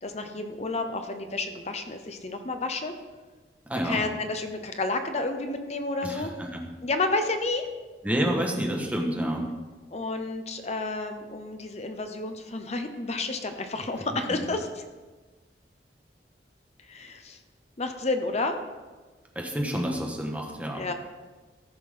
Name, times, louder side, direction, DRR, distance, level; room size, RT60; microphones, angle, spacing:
voice 1, 0.0-2.9 3.8-6.3 6.8-7.7 9.9-14.8 16.9-17.4 17.8-18.6 20.8-20.9, left 3 dB, 40° left, 7 dB, 0.9 m, -30 dB
voice 2, 3.7-4.0 6.0-6.6 8.0-9.5 19.3-20.9, equal, 10° right, 0 dB, 1.4 m, -29 dB
14.0 x 5.9 x 5.6 m, 1.3 s
head